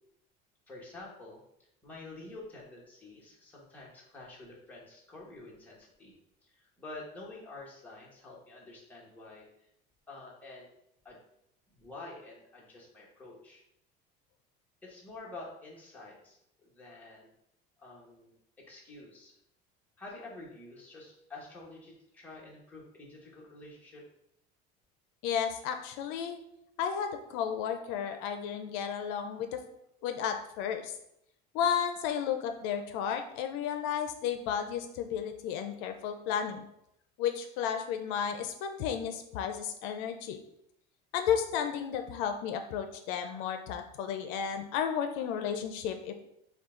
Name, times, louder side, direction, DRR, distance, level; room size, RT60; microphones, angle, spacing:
voice 1, 0.7-1.4 1.8-6.1 6.4-9.7 10.1-10.7 11.0-11.2 11.7-13.6 14.8-16.4 16.6-17.3 17.8-19.3 20.0-24.0, left 2 dB, 10° left, -5 dB, 1.1 m, -48 dB
voice 2, 25.2-26.4 26.8-29.6 30.0-30.9 31.5-36.7 37.2-40.4 41.1-46.1, left 8 dB, 75° left, 6 dB, 0.5 m, -33 dB
5.4 x 2.3 x 3.7 m, 0.79 s
cardioid pair, 155°, 20 cm